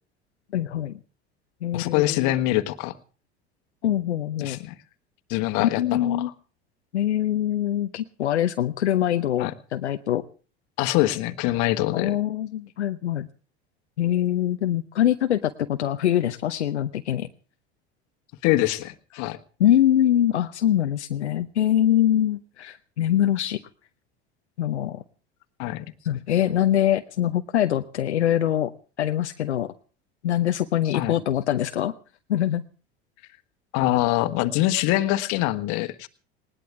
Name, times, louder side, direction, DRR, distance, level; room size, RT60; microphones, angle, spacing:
voice 1, 0.5-1.0 1.6-2.3 3.8-4.6 5.6-6.3 6.9-10.2 11.9-13.3 14.0-17.3 19.6-23.6 24.6-25.0 26.0-28.7 29.0-29.7 30.2-31.9 32.3-32.6, left 11 dB, 85° left, 8 dB, 0.8 m, -23 dB
voice 2, 1.7-2.9 4.4-4.7 5.3-6.3 9.4-9.5 10.8-12.1 18.4-19.4 25.6-25.8 30.9-31.1 33.7-36.1, left 16 dB, 60° left, 11 dB, 1.5 m, -24 dB
20.0 x 19.0 x 3.6 m, 0.38 s
hypercardioid pair, 75°, 33 cm